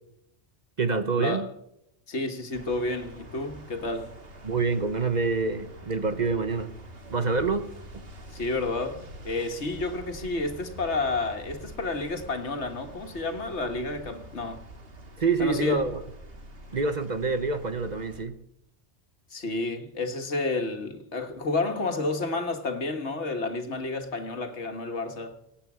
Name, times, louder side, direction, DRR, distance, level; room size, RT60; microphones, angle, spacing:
voice 1, 0.8-1.5 4.4-6.7 7.1-7.7 7.9-8.0 15.2-16.0 16.7-18.3, right 4 dB, 40° right, 1.0 m, -26 dB
voice 2, 2.1-4.1 8.3-14.6 15.4-15.9 19.3-25.4, left 2 dB, 75° left, 1.9 m, -30 dB
sound 1, 2.5-18.2, right 1 dB, 55° right, 2.0 m, -46 dB
25.0 x 8.8 x 6.1 m
omnidirectional pair, 1.2 m